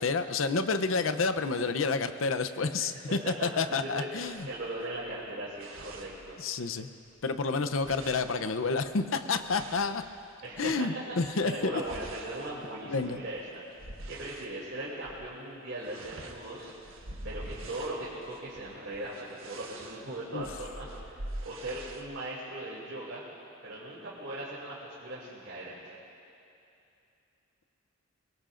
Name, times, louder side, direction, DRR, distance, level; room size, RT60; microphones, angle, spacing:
voice 1, 0.0-4.5 6.4-6.9 7.2-10.0 10.6-11.8 12.9-13.2 20.3-20.4, left 4 dB, 75° left, 9 dB, 0.7 m, -29 dB
voice 2, 3.4-6.4 10.4-10.7 11.3-16.7 17.2-23.2 23.6-25.9, right 1 dB, 65° right, -7 dB, 2.8 m, -39 dB
sound 1, 4.2-6.8 7.1-10.7 11.2-14.6 15.0-15.3 15.5-22.1, right 1 dB, 90° right, 1.3 m, -46 dB
23.0 x 22.5 x 2.6 m, 2.7 s
head